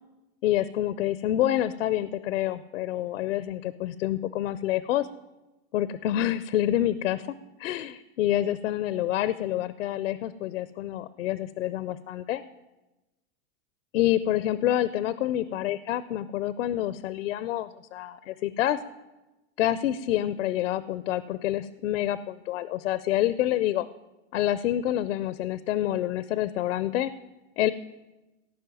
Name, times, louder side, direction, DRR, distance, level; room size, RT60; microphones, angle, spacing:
voice 1, 0.4-5.1 5.7-7.3 7.6-12.4 13.9-18.8 19.6-23.9 24.3-27.1 27.6-27.7, left 13 dB, 85° left, 15 dB, 0.6 m, -27 dB
16.0 x 5.6 x 9.1 m, 1.1 s
supercardioid pair, 135°, 36 cm